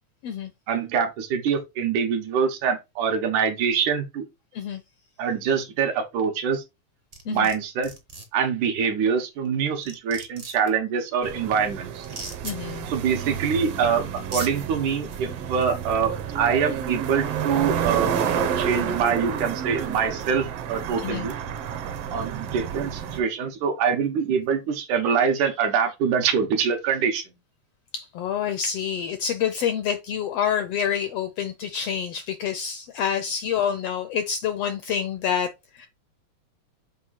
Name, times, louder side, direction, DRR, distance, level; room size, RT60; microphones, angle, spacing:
voice 1, 0.7-4.2 5.2-6.6 7.3-7.9 8.3-12.1 12.9-21.4 22.1-27.4, right 6 dB, 85° right, 2.7 m, -24 dB
sound 1, 7.1-7.5 7.8-8.2 9.4-9.5 9.8-10.7 12.0-12.5 13.7-13.8 14.2-14.5, right 2 dB, 50° right, 0.6 m, -36 dB
sound 2, 11.2-23.2, right 8 dB, 65° right, 1.7 m, -30 dB
voice 2, 12.4-12.9 21.0-21.3 27.9-35.9, left 8 dB, 80° left, 1.4 m, -27 dB
7.5 x 2.6 x 5.7 m
omnidirectional pair, 3.4 m